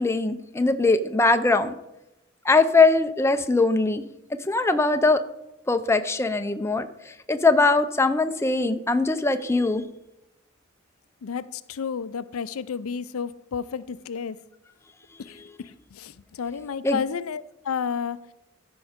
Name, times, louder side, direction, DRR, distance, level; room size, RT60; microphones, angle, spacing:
voice 1, 0.0-1.7 2.4-4.0 4.4-5.2 5.7-9.9 16.8-17.0, left 3 dB, 10° left, 8 dB, 0.5 m, -21 dB
voice 2, 11.2-14.4 15.2-18.2, left 6 dB, 80° left, 15 dB, 0.5 m, -31 dB
14.0 x 5.4 x 5.0 m, 0.90 s
head